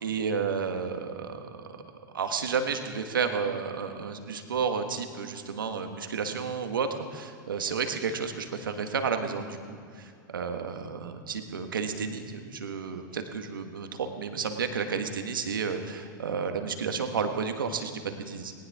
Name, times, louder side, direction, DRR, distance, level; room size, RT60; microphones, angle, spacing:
voice 1, 0.0-1.6 2.1-18.5, right 5 dB, 80° right, 6 dB, 1.5 m, -31 dB
19.0 x 18.5 x 3.6 m, 2.2 s
hypercardioid pair, 100°, 11 cm